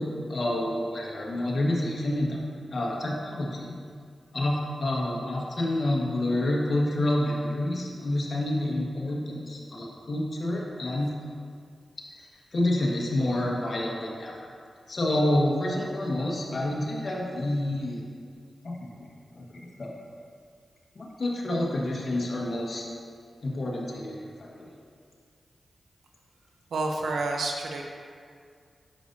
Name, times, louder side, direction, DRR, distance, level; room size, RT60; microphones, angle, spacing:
voice 1, 0.0-2.4 2.7-3.7 4.3-11.1 12.2-14.5 14.9-18.0 18.6-19.1 19.3-19.9 20.9-22.8 23.4-24.7, left 1 dB, 60° left, -3 dB, 1.6 m, -28 dB
voice 2, 26.7-27.8, right 2 dB, 85° right, 1 dB, 0.8 m, -29 dB
9.8 x 6.7 x 2.8 m, 2.2 s
cardioid pair, 45°, 0 cm